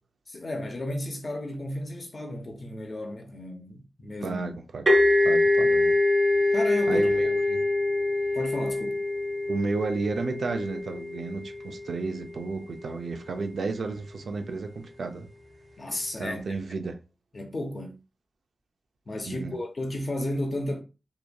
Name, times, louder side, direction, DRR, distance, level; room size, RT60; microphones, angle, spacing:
voice 1, 0.3-4.4 6.5-7.3 8.3-9.0 15.8-16.6 17.3-17.9 19.1-20.8, left 1 dB, 50° left, 0.7 m, -33 dB
voice 2, 4.2-4.8 5.2-5.9 6.9-7.6 9.5-15.3 16.2-17.0 19.2-19.6, right 3 dB, 90° right, 0.4 m, -32 dB
sound 1, 4.9-12.4, left 2 dB, 45° right, 0.7 m, -24 dB
2.9 x 2.5 x 2.2 m
wide cardioid pair, 80°, 0 cm